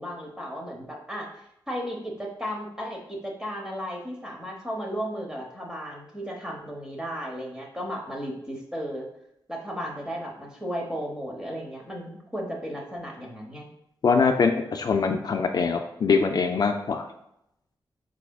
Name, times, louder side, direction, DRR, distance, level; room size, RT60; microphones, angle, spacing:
voice 1, 0.0-1.3 1.7-9.1 9.5-13.7, equal, 10° right, 0 dB, 1.0 m, -34 dB
voice 2, 14.0-17.0, left 5 dB, 50° left, 4 dB, 0.3 m, -23 dB
4.9 x 4.6 x 2.3 m, 0.79 s
wide cardioid pair, 165°, 9 cm